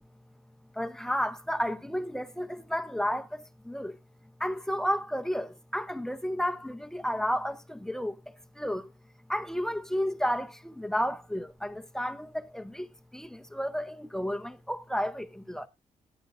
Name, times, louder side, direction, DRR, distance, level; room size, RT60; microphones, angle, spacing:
voice 1, 0.8-4.0 4.4-8.2 8.6-8.9 9.3-12.9 13.1-15.7, equal, 5° left, 0.6 m, -32 dB
15.5 x 9.3 x 2.5 m
cardioid pair, 110°, 12 cm